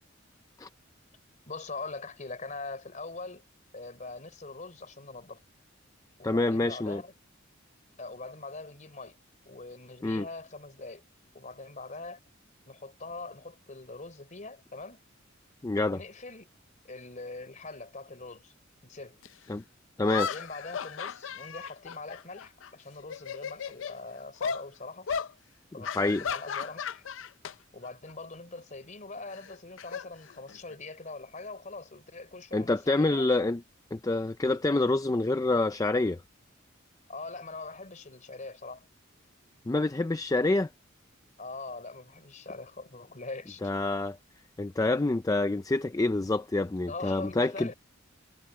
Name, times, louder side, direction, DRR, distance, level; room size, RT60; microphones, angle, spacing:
voice 1, 1.5-3.4 3.7-5.4 6.2-7.1 8.0-9.2 9.5-11.0 11.3-12.2 12.7-15.0 15.9-16.5 16.8-18.5 18.8-19.2 20.1-25.1 25.7-27.0 27.7-33.3 37.1-38.9 41.4-43.6 46.9-47.7, left 3 dB, 40° left, 3.6 m, -42 dB
voice 2, 6.2-7.0 10.0-10.3 15.6-16.0 19.5-19.6 20.0-20.3 25.9-26.2 32.5-33.6 33.9-36.2 39.7-40.7 43.6-44.2 44.6-47.7, left 2 dB, 15° left, 0.4 m, -27 dB
sound 1, 19.2-19.3 20.0-22.7 23.0-24.0 24.4-24.6 25.1-25.3 25.8-27.5 27.8-28.1 29.3-30.8, left 6 dB, 70° left, 0.5 m, -35 dB
head